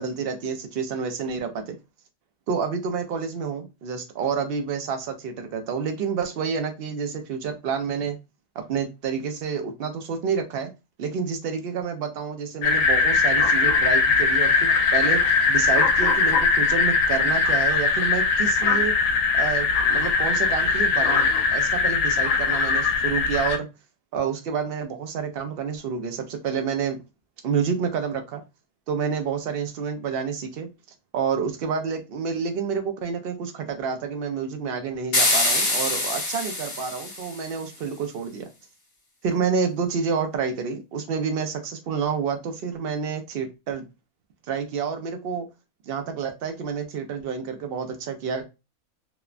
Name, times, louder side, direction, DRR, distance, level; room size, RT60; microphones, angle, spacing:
voice 1, 0.0-1.8 2.5-8.2 8.6-10.7 11.0-18.9 19.3-23.7 24.1-27.0 27.4-28.4 28.9-30.7 31.1-38.5 39.2-43.8 44.5-45.5 45.9-48.4, right 6 dB, 65° right, 6 dB, 0.6 m, -29 dB
sound 1, 12.6-23.6, left 4 dB, 75° left, 1.0 m, -21 dB
sound 2, 35.1-37.5, left 2 dB, 50° left, 1.1 m, -24 dB
2.9 x 2.2 x 2.4 m, 0.25 s
omnidirectional pair, 1.5 m